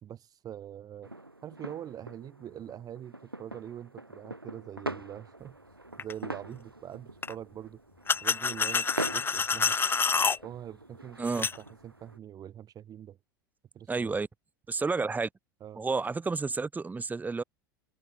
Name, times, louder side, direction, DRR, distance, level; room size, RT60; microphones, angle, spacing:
voice 1, 0.0-1.1 1.4-5.6 6.0-7.8 8.2-9.7 10.4-13.2 13.7-14.2 15.6-15.8, right 10 dB, 30° right, 3.5 m, -44 dB
sound 1, 1.0-12.2, right 2 dB, 90° right, 2.5 m, -43 dB
sound 2, 6.0-6.1 7.2-7.3 8.1-10.4 11.3-11.6, left 5 dB, 20° left, 2.3 m, -27 dB
voice 2, 13.9-14.3 14.7-15.3 15.8-17.4, right 4 dB, 15° right, 5.4 m, -30 dB
figure-of-eight pair, 80°, 12 cm